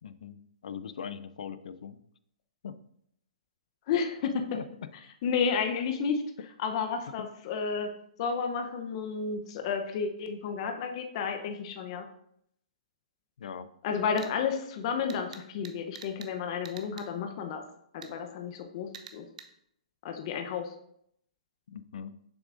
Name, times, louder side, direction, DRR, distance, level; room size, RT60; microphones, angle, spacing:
voice 1, 0.0-2.0 2.6-2.8 4.5-4.6 13.4-13.7 21.7-22.1, left 7 dB, 70° left, 14 dB, 0.5 m, -41 dB
voice 2, 3.9-4.5 5.2-6.2 6.6-7.9 8.2-12.1 13.8-17.6 17.9-19.3 20.0-20.7, left 6 dB, 45° left, 5 dB, 0.8 m, -31 dB
sound 1, 14.2-14.3 15.1-16.3 16.6-17.1 18.0-18.1 18.9-19.5, right 7 dB, 65° right, 0.8 m, -46 dB
7.1 x 6.1 x 2.6 m, 0.73 s
hypercardioid pair, 145°, 4 cm